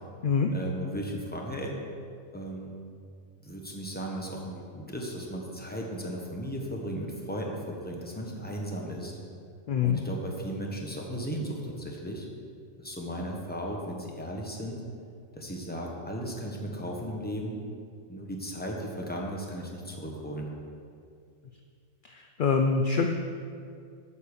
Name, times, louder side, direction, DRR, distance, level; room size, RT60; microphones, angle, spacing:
voice 1, 0.5-1.7 2.3-2.7 3.4-9.1 9.8-12.3 12.8-14.8 15.3-17.6 18.1-20.5, equal, 10° left, -1 dB, 1.1 m, -36 dB
voice 2, 9.7-10.0 22.0-23.1, left 5 dB, 60° left, 4 dB, 0.5 m, -25 dB
8.5 x 5.5 x 6.7 m, 2.3 s
omnidirectional pair, 1.4 m